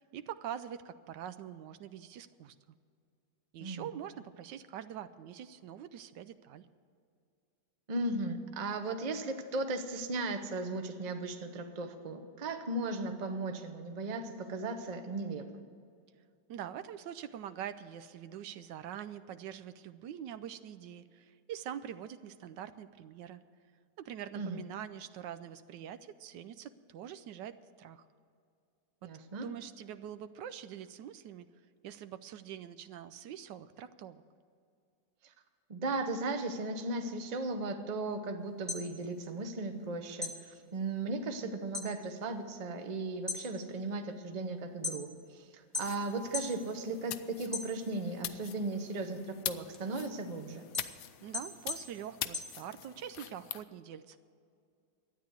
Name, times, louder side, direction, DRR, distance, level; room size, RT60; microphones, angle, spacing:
voice 1, 0.0-2.6 3.5-6.7 16.5-23.4 24.0-28.0 29.0-31.5 31.8-34.2 51.2-54.2, right 9 dB, 80° right, 11 dB, 1.2 m, -44 dB
voice 2, 7.9-15.6 24.3-24.6 29.0-29.5 35.2-35.3 35.7-50.7, right 2 dB, 35° right, 7 dB, 0.7 m, -36 dB
sound 1, 38.5-39.9 40.2-41.9 42.3-42.7 43.1-45.3 45.7-46.6 47.0-48.2 48.6-53.1, left 3 dB, ahead, 0.9 m, -40 dB
sound 2, 45.7-53.6, left 12 dB, 70° left, 1.1 m, -44 dB
12.5 x 9.5 x 8.0 m, 2.4 s
omnidirectional pair, 1.9 m